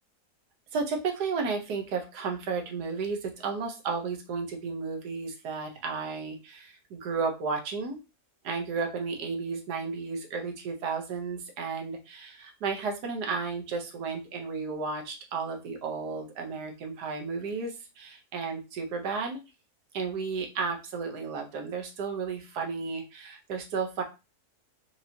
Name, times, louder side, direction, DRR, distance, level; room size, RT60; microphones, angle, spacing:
voice 1, 0.7-8.0 8.4-19.4 19.9-24.0, right 4 dB, 90° right, 3 dB, 1.4 m, -33 dB
4.7 x 2.6 x 2.8 m, 0.28 s
omnidirectional pair, 1.7 m